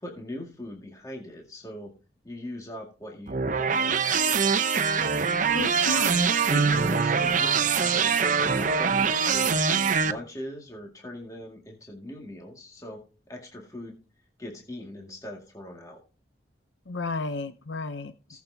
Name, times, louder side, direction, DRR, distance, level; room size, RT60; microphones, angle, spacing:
voice 1, 0.0-1.9 2.2-4.8 6.5-9.6 10.0-13.0 13.3-14.0 14.4-16.0 18.3-18.4, left 1 dB, 20° left, 0 dB, 2.1 m, -40 dB
sound 1, 3.3-10.1, right 5 dB, 45° right, 0.7 m, -23 dB
voice 2, 5.5-6.3 16.9-18.1, left 3 dB, 90° left, 11 dB, 0.7 m, -32 dB
18.5 x 7.2 x 2.8 m, 0.35 s
head